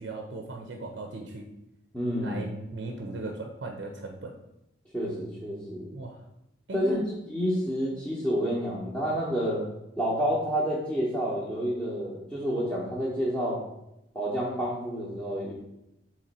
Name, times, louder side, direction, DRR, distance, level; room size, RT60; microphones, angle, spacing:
voice 1, 0.0-1.5 2.2-4.3 5.9-6.2 6.7-7.0, right 2 dB, 65° right, 3 dB, 0.5 m, -37 dB
voice 2, 1.9-2.4 4.9-5.9 6.7-9.6 10.0-13.6 14.1-15.5, equal, 10° left, -9 dB, 0.8 m, -29 dB
4.1 x 3.0 x 4.1 m, 0.87 s
head